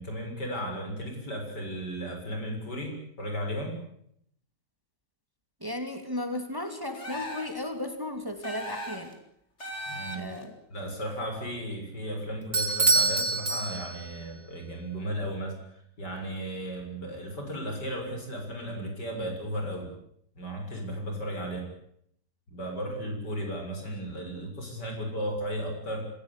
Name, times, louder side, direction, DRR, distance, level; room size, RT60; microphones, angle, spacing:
voice 1, 0.0-3.8 9.9-10.2 10.7-19.9 20.4-21.7 22.5-26.1, equal, 75° left, 3 dB, 7.5 m, -35 dB
voice 2, 5.6-9.1 10.1-10.5, left 1 dB, 10° right, 6 dB, 2.9 m, -35 dB
sound 1, 6.9-7.6 8.4-9.1 9.6-10.4, left 1 dB, 40° left, 4.5 m, -38 dB
Bell / Doorbell, 12.5-14.2, right 3 dB, 40° right, 3.2 m, -25 dB
26.0 x 17.0 x 9.9 m, 0.70 s
omnidirectional pair, 1.8 m